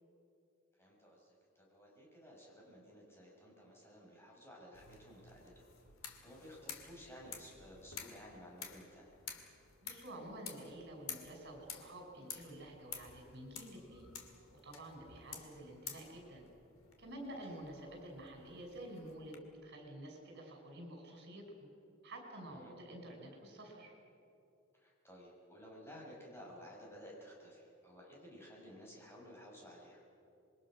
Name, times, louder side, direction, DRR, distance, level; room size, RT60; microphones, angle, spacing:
voice 1, 0.8-5.7 6.2-9.2 17.5-17.6 22.5-22.7 24.7-30.0, equal, 10° left, -4 dB, 6.4 m, -55 dB
sound 1, 4.7-19.4, left 7 dB, 85° left, 2.4 m, -52 dB
voice 2, 9.8-14.1 14.5-16.4 17.0-21.7 22.0-23.9, right 1 dB, 55° right, 1 dB, 6.0 m, -50 dB
27.0 x 22.5 x 6.3 m, 2.8 s
head